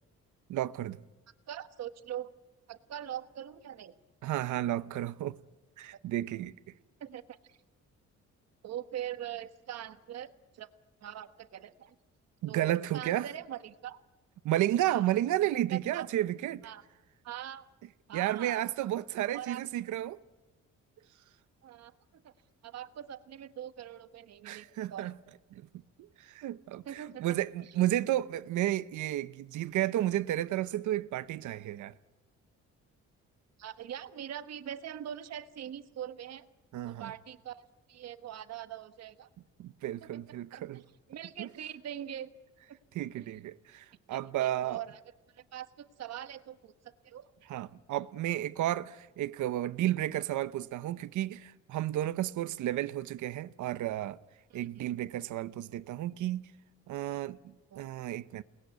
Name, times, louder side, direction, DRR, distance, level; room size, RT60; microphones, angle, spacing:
voice 1, 0.5-1.0 4.2-5.4 5.8-6.5 12.4-13.3 14.4-16.7 18.1-20.2 24.4-25.1 25.5-25.6 26.0-31.9 36.7-37.1 39.6-40.8 41.4-41.5 42.9-44.8 47.5-54.2 54.5-56.4 56.9-57.4 57.8-58.4, right 13 dB, 85° right, 0.9 m, -32 dB
voice 2, 1.5-2.3 2.7-3.9 7.0-7.6 8.6-10.7 11.0-11.9 12.5-14.0 14.9-15.1 15.7-16.1 16.6-16.8 17.2-17.6 18.1-18.6 19.3-19.6 21.6-22.3 22.6-25.1 26.8-27.4 33.6-36.5 36.8-39.3 40.0-40.2 40.5-40.6 41.1-42.3 43.1-43.3 44.1-45.0 45.3-47.3 54.5-54.9 57.7-57.8, right 10 dB, 60° right, 1.4 m, -42 dB
29.5 x 20.0 x 9.4 m
cardioid pair, 170°, 29 cm